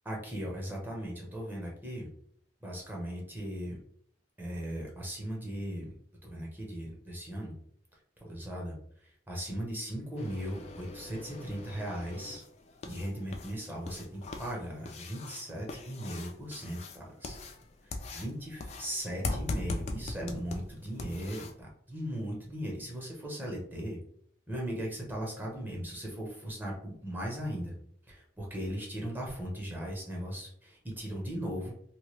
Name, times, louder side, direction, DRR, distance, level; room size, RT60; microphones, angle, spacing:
voice 1, 0.1-2.1 2.6-3.8 4.4-5.9 6.2-7.5 8.2-12.4 12.8-17.4 17.8-24.0 24.5-27.7 28.1-31.7, equal, 10° right, -2 dB, 0.7 m, -38 dB
sound 1, 10.2-21.5, left 2 dB, 35° left, 0.3 m, -41 dB
2.9 x 2.2 x 3.0 m, 0.64 s
head